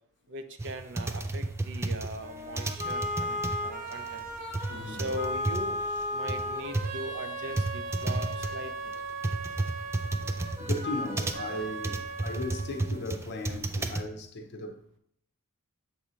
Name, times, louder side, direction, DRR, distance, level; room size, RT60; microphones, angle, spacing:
voice 1, 0.3-4.3 4.9-5.9 6.1-8.9, right 1 dB, 60° right, 0.6 m, -39 dB
sound 1, 0.6-14.0, right 2 dB, 10° right, 0.3 m, -32 dB
sound 2, 2.2-13.2, equal, 35° right, 1.0 m, -36 dB
voice 2, 4.7-5.1 7.1-7.2 10.2-15.0, left 2 dB, 50° left, 0.7 m, -38 dB
7.0 x 2.7 x 5.0 m
head